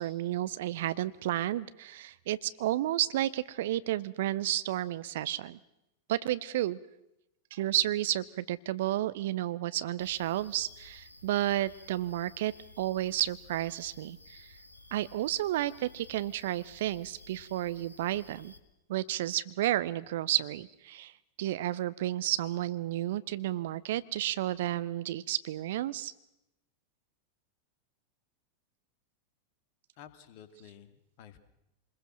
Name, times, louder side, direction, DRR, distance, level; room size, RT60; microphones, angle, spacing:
voice 1, 0.0-5.6 6.1-6.8 7.5-14.6 14.9-18.5 18.9-21.1 21.4-26.1, right 14 dB, 55° right, 16 dB, 0.8 m, -32 dB
sound 1, 10.0-18.6, left 2 dB, 80° left, 1.7 m, -54 dB
voice 2, 30.0-31.4, left 9 dB, 45° left, 10 dB, 2.2 m, -52 dB
27.0 x 21.5 x 6.3 m, 0.88 s
figure-of-eight pair, 90°, 0 cm